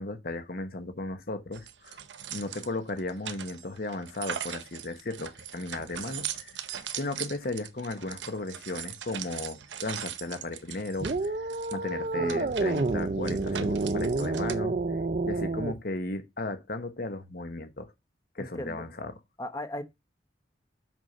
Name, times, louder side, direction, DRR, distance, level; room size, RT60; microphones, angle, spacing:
voice 1, 0.0-2.0 2.3-6.6 6.9-14.8 15.2-17.9 18.3-19.1, left 2 dB, 55° left, 1.1 m, -35 dB
sound 1, 1.5-14.5, right 9 dB, 90° right, 0.8 m, -40 dB
sound 2, 11.0-15.8, right 3 dB, 45° right, 0.6 m, -29 dB
voice 2, 12.1-12.6 18.4-18.9 19.4-19.8, left 1 dB, 20° left, 0.8 m, -37 dB
6.2 x 5.3 x 5.3 m
head